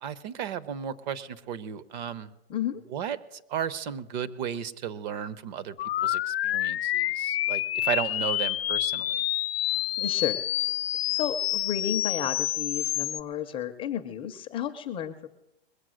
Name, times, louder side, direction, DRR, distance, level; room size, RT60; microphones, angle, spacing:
voice 1, 0.0-2.3 2.9-5.8 6.0-9.2, right 8 dB, 45° right, 17 dB, 0.8 m, -34 dB
voice 2, 2.5-2.8 10.0-10.4 11.1-15.3, left 10 dB, 15° left, 7 dB, 0.5 m, -32 dB
sound 1, 5.8-13.2, left 15 dB, 70° left, 0.4 m, -28 dB
21.0 x 7.4 x 6.3 m, 0.91 s
hypercardioid pair, 140°, 31 cm